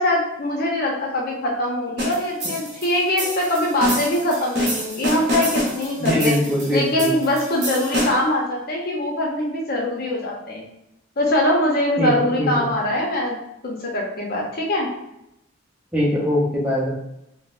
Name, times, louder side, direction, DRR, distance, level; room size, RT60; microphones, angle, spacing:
voice 1, 0.0-6.3 6.7-10.6 11.2-13.4 13.6-14.9, left 1 dB, 50° left, -1 dB, 0.7 m, -22 dB
sound 1, 2.0-8.4, equal, 60° right, 0.7 m, -27 dB
voice 2, 6.0-7.1 12.0-12.7 15.9-16.9, equal, 5° right, -5 dB, 0.6 m, -22 dB
3.7 x 2.0 x 2.4 m, 0.83 s
head